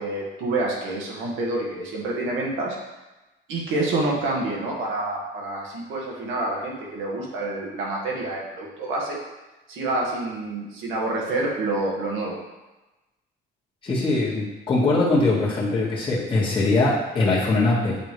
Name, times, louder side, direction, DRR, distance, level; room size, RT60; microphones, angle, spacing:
voice 1, 0.0-2.8 3.5-9.2 9.7-12.4, right 2 dB, 85° right, -3 dB, 1.6 m, -27 dB
voice 2, 13.8-18.0, left 2 dB, 25° left, -7 dB, 1.6 m, -22 dB
8.3 x 3.7 x 3.1 m, 1.1 s
cardioid pair, 150°, 20 cm